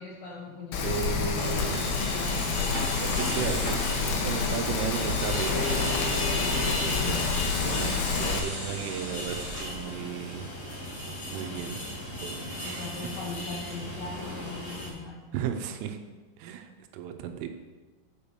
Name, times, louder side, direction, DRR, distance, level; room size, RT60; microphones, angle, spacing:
voice 1, 0.0-1.6 2.0-2.6 6.9-7.3 7.6-8.2 12.6-15.2, left 4 dB, 70° left, -4 dB, 2.1 m, -40 dB
Rain, 0.7-8.4, left 5 dB, 85° left, 3.3 m, -29 dB
voice 2, 0.8-1.8 3.0-6.1 7.1-10.6 11.3-11.8 12.2-12.9 15.3-16.0 16.4-17.5, right 8 dB, 85° right, 6 dB, 3.3 m, -35 dB
sound 1, 1.3-14.9, left 1 dB, 35° left, 1.2 m, -34 dB
7.5 x 7.2 x 6.7 m, 1.3 s
omnidirectional pair, 5.6 m